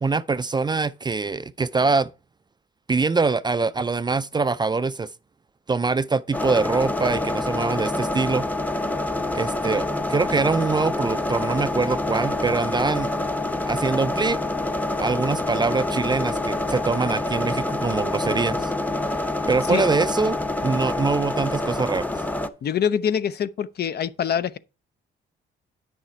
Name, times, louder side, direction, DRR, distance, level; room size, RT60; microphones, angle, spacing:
voice 1, 0.0-2.1 2.9-5.1 5.7-8.4 9.3-13.1 13.7-14.4 15.0-18.7 19.5-22.1, right 4 dB, 20° right, 0.4 m, -24 dB
sound 1, 6.3-22.5, left 2 dB, 10° left, 0.8 m, -26 dB
voice 2, 22.6-24.6, left 8 dB, 55° left, 0.7 m, -24 dB
9.4 x 6.4 x 4.6 m
cardioid pair, 90°, 20 cm